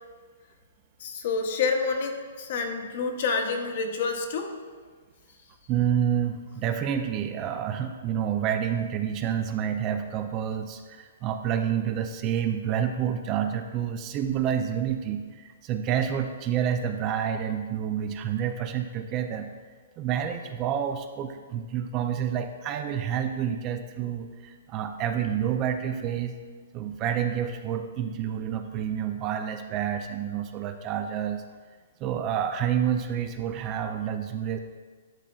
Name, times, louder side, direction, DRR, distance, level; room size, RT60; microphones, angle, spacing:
voice 1, 1.0-4.5, left 4 dB, 55° left, 4 dB, 0.9 m, -28 dB
voice 2, 5.7-19.5 20.0-26.4 26.7-31.4 32.0-34.6, right 9 dB, 30° right, 8 dB, 0.4 m, -28 dB
10.5 x 4.9 x 2.4 m, 1.5 s
hypercardioid pair, 145°, 0 cm